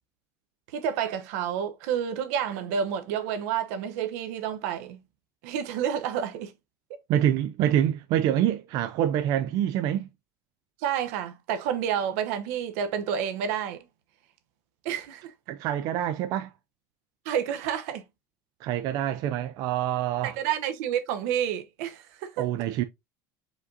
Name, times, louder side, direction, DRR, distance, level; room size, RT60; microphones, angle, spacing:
voice 1, 0.7-5.0 5.4-6.5 10.8-13.8 14.8-15.3 17.2-18.0 20.2-22.5, right 8 dB, 80° right, 0.9 m, -29 dB
voice 2, 7.1-10.1 15.5-16.5 18.6-20.4 22.4-22.8, right 11 dB, 50° right, 0.4 m, -26 dB
5.0 x 3.8 x 2.6 m
cardioid pair, 170°, 8 cm